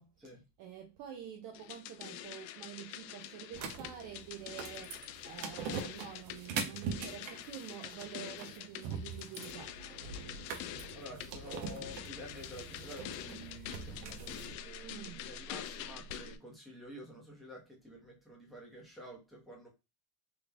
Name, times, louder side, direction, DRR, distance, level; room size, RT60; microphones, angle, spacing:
voice 1, 0.0-9.8 14.8-15.3, right 10 dB, 40° right, 0.5 m, -48 dB
sound 1, 1.5-16.4, left 10 dB, 75° left, 0.6 m, -46 dB
sound 2, 3.5-14.5, right 5 dB, 90° right, 1.0 m, -43 dB
voice 2, 10.9-19.7, equal, ahead, 1.1 m, -50 dB
3.7 x 3.3 x 2.3 m
supercardioid pair, 145°, 49 cm